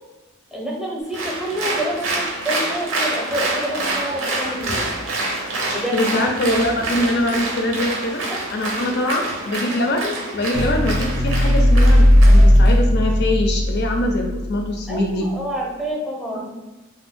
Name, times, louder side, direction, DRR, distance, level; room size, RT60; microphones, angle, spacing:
voice 1, 0.5-4.9 5.7-6.0 8.3-8.4 8.9-9.0 14.9-16.5, right 1 dB, ahead, -3 dB, 0.6 m, -28 dB
Applause, 1.1-12.8, right 2 dB, 90° right, 0.8 m, -27 dB
voice 2, 5.9-8.2 8.5-15.3, left 1 dB, 50° left, 3 dB, 0.4 m, -23 dB
sound 1, 10.5-14.7, equal, 50° right, 0.5 m, -15 dB
2.5 x 2.3 x 3.5 m, 1.1 s
head